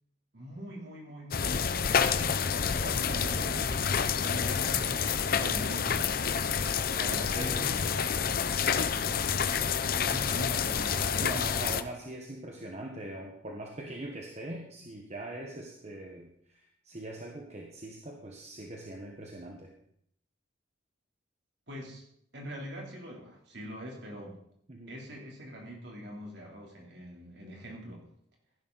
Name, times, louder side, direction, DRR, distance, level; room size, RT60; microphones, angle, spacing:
voice 1, 0.3-3.7 4.2-6.4 6.9-8.3 10.1-11.5 21.7-22.0 22.3-24.4 24.9-28.0, equal, 55° right, -1 dB, 3.4 m, -43 dB
sound 1, 1.3-11.8, left 7 dB, 45° left, 0.6 m, -28 dB
voice 2, 2.8-3.3 6.9-7.7 8.9-9.3 11.2-19.7 24.7-25.0, right 1 dB, 35° right, 0 dB, 1.3 m, -42 dB
15.5 x 11.0 x 4.1 m, 0.70 s
head